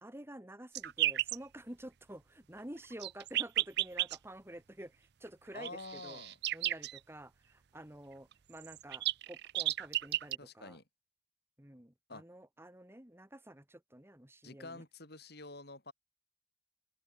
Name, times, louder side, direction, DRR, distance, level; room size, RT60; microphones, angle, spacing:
voice 1, 0.0-6.2 6.5-10.8 11.6-14.8, right 1 dB, 15° right, 2.6 m, -50 dB
sound 1, 0.7-1.4 2.8-4.2 5.6-7.0 8.3-8.4 8.6-10.4, right 14 dB, 60° right, 0.6 m, -33 dB
voice 2, 5.5-6.4 10.4-10.8 12.1-12.2 14.4-15.9, left 3 dB, 60° left, 7.2 m, -48 dB
head